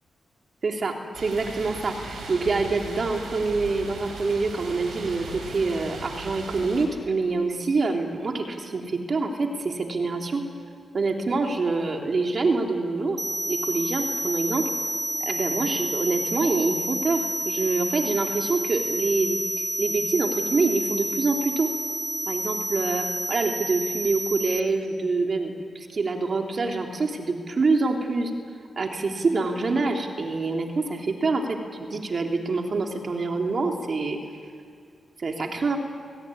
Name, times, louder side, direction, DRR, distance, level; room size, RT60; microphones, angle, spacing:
voice 1, 0.6-10.4 10.9-13.2 13.5-14.7 15.2-21.7 22.3-28.3 28.8-34.2 35.2-35.8, right 3 dB, 55° right, 2 dB, 3.2 m, -26 dB
sound 1, 1.1-6.9, right 3 dB, 85° right, 5.0 m, -38 dB
sound 2, 13.2-24.6, right 1 dB, 10° right, 0.9 m, -30 dB
22.5 x 17.5 x 10.0 m, 2.2 s
cardioid pair, 60°, 0 cm